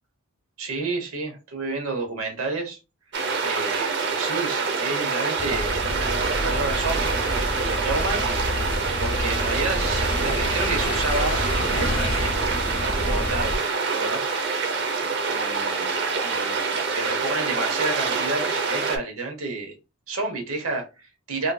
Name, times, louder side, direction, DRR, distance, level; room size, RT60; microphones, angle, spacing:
voice 1, 0.6-2.8 3.4-7.2 7.7-8.3 9.0-13.6 13.9-14.3 15.3-19.8 20.1-21.5, right 3 dB, 75° right, 1.0 m, -30 dB
sound 1, 3.1-19.0, right 4 dB, 50° right, 0.7 m, -26 dB
sound 2, 5.4-13.6, left 1 dB, 25° left, 0.5 m, -28 dB
3.7 x 2.7 x 2.3 m
head